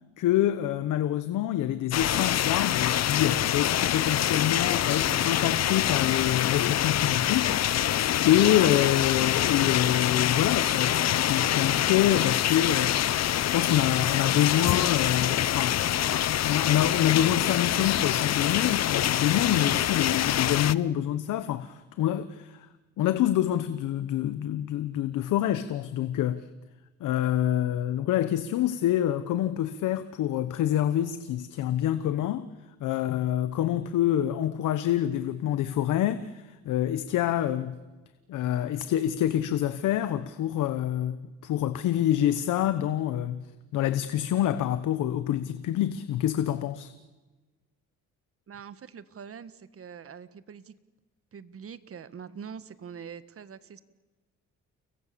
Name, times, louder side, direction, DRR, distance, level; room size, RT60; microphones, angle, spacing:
voice 1, 0.2-15.8 16.3-22.7 23.0-26.4 27.0-32.5 32.8-37.8 38.3-43.4 43.7-46.9, left 11 dB, 85° left, 1.2 m, -26 dB
sound 1, 1.9-20.7, left 11 dB, 60° left, 0.8 m, -25 dB
voice 2, 48.5-50.7 51.3-53.8, right 7 dB, 50° right, 1.6 m, -44 dB
30.0 x 23.0 x 7.0 m
cardioid pair, 90°, 30 cm